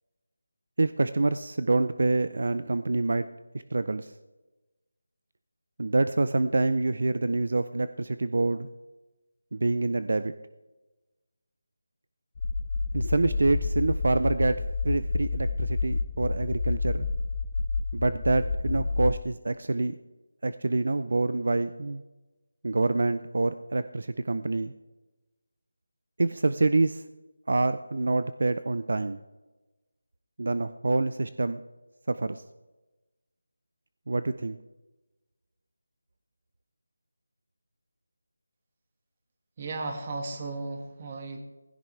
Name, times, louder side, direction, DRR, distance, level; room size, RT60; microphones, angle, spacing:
voice 1, 0.8-3.2 3.7-4.1 5.8-8.7 9.5-10.3 12.9-14.6 14.8-17.1 17.9-19.9 20.4-22.0 22.6-24.7 26.2-27.0 27.5-29.2 30.4-31.6 32.1-32.4 34.1-34.6, right 2 dB, 65° right, 12 dB, 0.5 m, -26 dB
sound 1, 12.4-19.1, left 3 dB, 40° left, 0.9 m, -29 dB
voice 2, 39.6-41.4, right 3 dB, 30° right, 4 dB, 1.8 m, -35 dB
16.5 x 15.5 x 3.3 m, 1.1 s
figure-of-eight pair, 170°, 0 cm